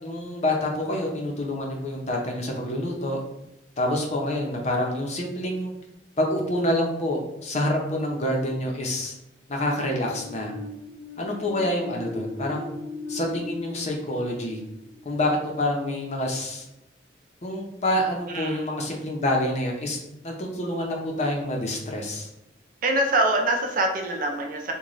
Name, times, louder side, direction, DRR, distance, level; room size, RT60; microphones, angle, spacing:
voice 1, 0.0-3.2 3.8-5.7 6.2-9.1 9.5-10.5 11.2-12.7 13.1-14.6 15.0-16.6 17.4-20.0 20.2-22.3, left 1 dB, 40° left, 0 dB, 0.6 m, -27 dB
sound 1, 10.0-15.7, left 2 dB, 90° left, 0.9 m, -38 dB
voice 2, 22.8-24.7, right 1 dB, 45° right, 2 dB, 0.5 m, -24 dB
3.0 x 2.2 x 3.8 m, 0.85 s
head